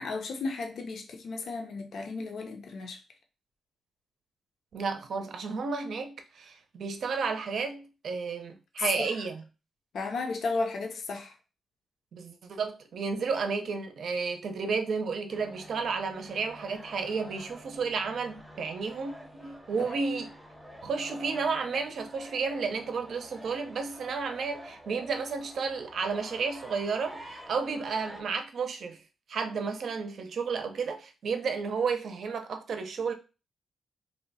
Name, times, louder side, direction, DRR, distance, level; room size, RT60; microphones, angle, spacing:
voice 1, 0.0-3.0 9.0-9.1 9.9-11.3 19.8-19.9, left 3 dB, 65° left, 0.6 m, -34 dB
voice 2, 4.7-9.4 12.1-19.1 19.4-20.4 20.8-29.0 29.3-33.1, right 5 dB, 65° right, 0.5 m, -32 dB
sound 1, 15.3-28.2, equal, 5° right, 0.7 m, -48 dB
2.8 x 2.2 x 4.0 m
cardioid pair, 105°, 0 cm